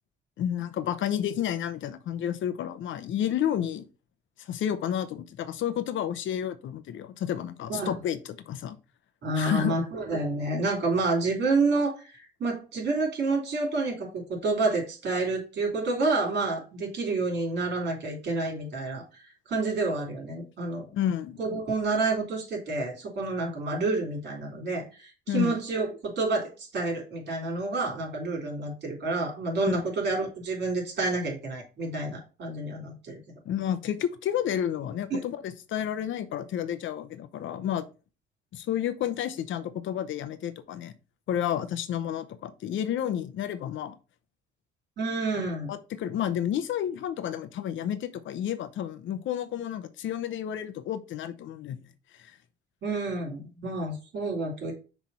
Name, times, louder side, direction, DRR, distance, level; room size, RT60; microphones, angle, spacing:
voice 1, 0.4-3.8 4.4-8.8 9.3-9.7 20.9-21.4 25.3-25.6 33.4-37.8 38.5-40.9 41.3-44.0 45.7-51.8 52.1-52.4, left 10 dB, 75° left, 0.8 m, -31 dB
voice 2, 9.2-20.9 21.4-33.2 35.1-35.3 45.0-45.7 52.8-54.7, right 3 dB, 60° right, 3.6 m, -29 dB
6.2 x 3.4 x 5.7 m
cardioid pair, 90°, 20 cm